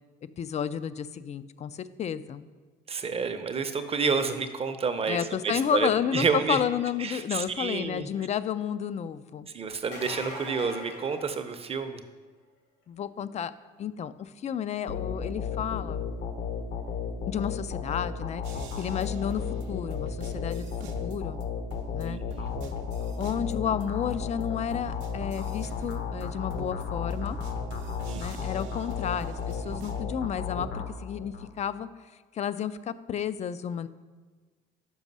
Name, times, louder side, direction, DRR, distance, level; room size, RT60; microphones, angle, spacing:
voice 1, 0.4-2.5 5.1-9.5 12.9-13.5 13.8-16.1 17.3-18.4 18.8-20.7 21.0-21.4 21.9-22.2 23.2-27.4 28.2-31.9 32.3-33.9, left 8 dB, 35° left, 15 dB, 0.4 m, -31 dB
voice 2, 2.9-5.2 5.4-6.6 7.0-8.1 9.5-12.0 22.0-22.5 28.1-28.5, right 5 dB, 30° right, 8 dB, 0.7 m, -29 dB
sound 1, 9.7-12.0 17.5-17.6 19.4-19.5, left 2 dB, 85° left, 2.1 m, -41 dB
sound 2, 14.9-31.5, left 5 dB, 65° left, 0.9 m, -34 dB
sound 3, 18.4-21.4 21.7-23.8 24.1-30.0, right 4 dB, 70° right, 0.7 m, -45 dB
6.2 x 5.2 x 5.3 m, 1.4 s
supercardioid pair, 85°, 20 cm